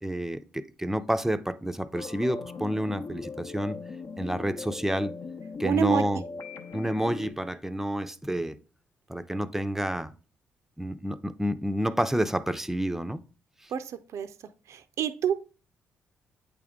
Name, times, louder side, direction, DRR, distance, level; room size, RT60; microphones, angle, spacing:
voice 1, 0.0-3.8 4.2-5.1 5.6-6.2 6.7-8.6 9.1-10.1 10.8-13.2, equal, 5° right, 0.5 m, -29 dB
sound 1, 1.9-7.3, left 4 dB, 55° left, 0.8 m, -39 dB
voice 2, 5.6-6.0 13.7-14.3 14.7-15.3, right 8 dB, 60° right, 0.5 m, -28 dB
8.4 x 3.4 x 3.6 m
hypercardioid pair, 45°, 6 cm